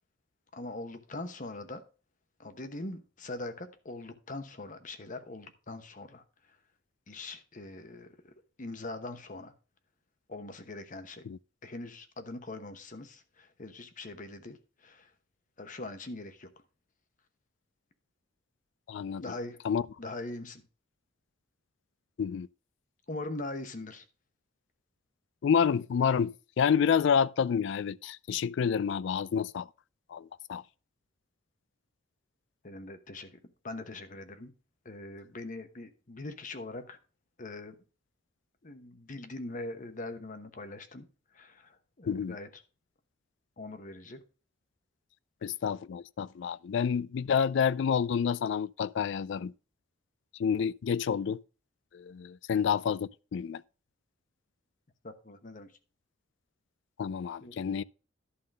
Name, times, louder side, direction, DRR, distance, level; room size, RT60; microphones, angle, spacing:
voice 1, 0.5-1.8 2.4-6.2 7.1-8.3 8.6-9.5 10.3-11.3 11.6-15.1 15.6-16.5 19.2-19.6 20.0-20.6 23.1-24.0 32.6-34.5 34.8-37.0 37.4-37.8 38.6-41.1 41.3-42.6 43.6-44.2 55.0-55.7 57.4-57.6, left 2 dB, 40° left, 1.0 m, -42 dB
voice 2, 18.9-19.2 19.6-19.8 22.2-22.5 25.4-29.7 30.1-30.6 42.1-42.4 45.4-49.5 50.4-51.4 51.9-53.6 57.0-57.8, left 7 dB, 60° left, 0.3 m, -29 dB
11.5 x 3.8 x 6.3 m
head